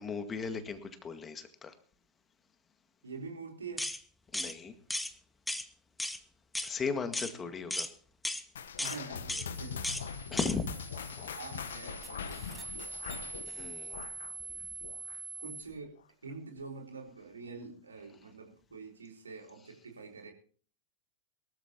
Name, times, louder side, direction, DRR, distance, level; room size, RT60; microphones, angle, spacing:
voice 1, 0.0-1.7 4.3-4.7 6.6-7.9 10.3-10.7 11.2-11.3 13.4-14.0, left 5 dB, 20° left, 9 dB, 1.9 m, -36 dB
voice 2, 3.0-3.9 7.2-7.5 8.8-9.8 10.9-11.1 11.3-13.2 15.4-15.9 16.2-20.3, right 4 dB, 75° right, 2 dB, 3.8 m, -46 dB
sound 1, 3.8-4.0 4.3-4.5 4.9-5.1 5.5-5.7 6.0-6.2 6.5-6.7 7.1-7.3 7.7-7.9 8.2-8.4 8.8-9.0 9.3-9.5 9.8-10.0 10.4-10.5, left 1 dB, 5° left, 1.0 m, -35 dB
sound 2, 8.6-15.4 15.7-16.0 16.6-16.7 17.5-17.6, left 6 dB, 65° left, 1.1 m, -42 dB
sound 3, 9.5-15.6, right 4 dB, 15° right, 2.2 m, -45 dB
23.0 x 13.5 x 3.0 m, 0.42 s
figure-of-eight pair, 90°, 0 cm